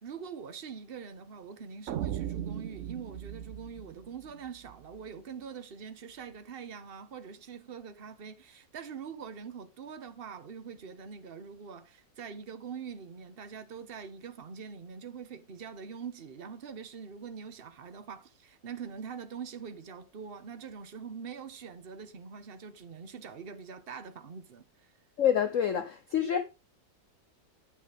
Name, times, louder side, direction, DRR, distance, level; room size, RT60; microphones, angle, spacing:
voice 1, 0.0-24.9, right 6 dB, 40° right, 1.0 m, -44 dB
sound 1, 1.9-5.0, right 10 dB, 75° right, 0.7 m, -38 dB
voice 2, 25.2-26.4, left 9 dB, 60° left, 0.9 m, -27 dB
9.4 x 8.8 x 3.4 m
omnidirectional pair, 2.0 m